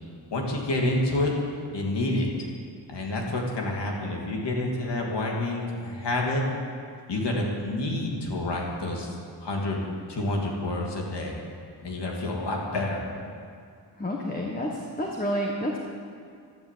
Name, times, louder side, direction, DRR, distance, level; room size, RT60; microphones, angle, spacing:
voice 1, 0.3-1.3 1.7-2.3 2.9-6.4 7.1-9.1 9.4-9.8 10.1-11.4 11.8-13.0, left 1 dB, 75° left, -1 dB, 2.9 m, -28 dB
voice 2, 14.0-15.8, equal, 20° left, -1 dB, 1.4 m, -29 dB
12.0 x 11.5 x 8.6 m, 2.2 s
wide cardioid pair, 135°, 41 cm